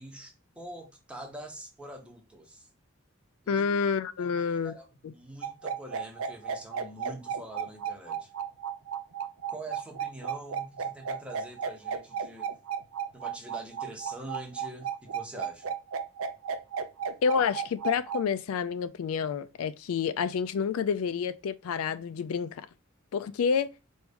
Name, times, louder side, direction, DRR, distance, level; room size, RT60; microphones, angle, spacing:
voice 1, 0.0-2.7 3.4-3.6 4.2-8.3 9.5-12.5 13.1-15.7, right 1 dB, 5° right, 0.7 m, -45 dB
voice 2, 3.5-4.8 5.0-5.1 17.2-22.7 23.1-23.7, left 6 dB, 80° left, 0.4 m, -29 dB
sound 1, 5.4-18.2, right 7 dB, 80° right, 0.6 m, -33 dB
4.5 x 2.6 x 3.4 m
head